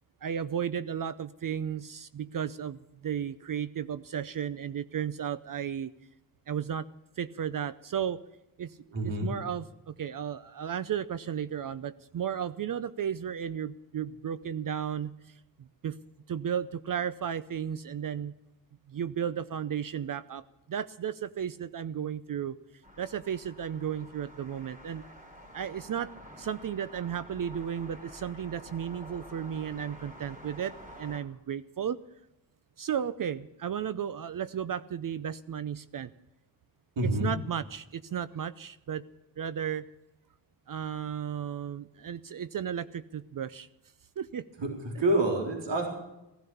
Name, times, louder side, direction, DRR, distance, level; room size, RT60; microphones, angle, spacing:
voice 1, 0.2-5.9 6.5-6.9 7.2-8.2 8.6-16.0 16.3-18.3 18.9-22.6 23.0-25.0 25.5-26.1 26.4-32.0 32.8-36.1 37.0-39.0 39.4-39.8 40.7-43.7 44.2-44.5, right 8 dB, 45° right, 16 dB, 0.6 m, -34 dB
voice 2, 8.9-9.3 37.0-37.3 44.6-45.9, right 1 dB, 70° right, 2 dB, 3.9 m, -27 dB
sound 1, 22.8-31.2, equal, 15° right, 3.2 m, -49 dB
16.0 x 12.0 x 7.0 m, 0.91 s
cardioid pair, 90°, 46 cm